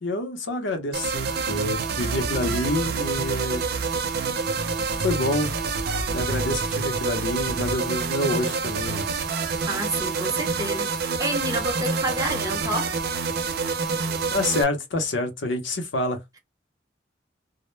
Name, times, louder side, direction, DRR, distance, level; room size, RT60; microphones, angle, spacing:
voice 1, 0.0-3.6 5.0-5.5 6.1-9.1 14.3-16.2, left 2 dB, 80° left, 0.7 m, -27 dB
sound 1, 0.9-14.6, right 4 dB, 55° right, 0.4 m, -27 dB
voice 2, 9.5-12.9, right 1 dB, 20° right, 0.6 m, -29 dB
2.1 x 2.0 x 3.0 m
head